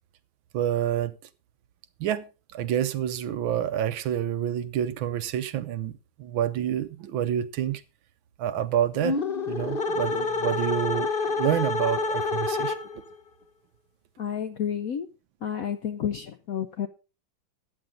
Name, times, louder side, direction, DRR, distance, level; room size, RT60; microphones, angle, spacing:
voice 1, 0.5-1.1 2.0-7.8 8.4-9.2 9.5-11.1 11.4-12.8, right 10 dB, 75° right, 1.5 m, -28 dB
sound 1, 8.9-13.1, left 3 dB, 40° left, 0.8 m, -28 dB
voice 2, 14.2-15.1 15.4-16.9, left 8 dB, 70° left, 0.8 m, -30 dB
13.5 x 9.0 x 3.8 m
omnidirectional pair, 2.2 m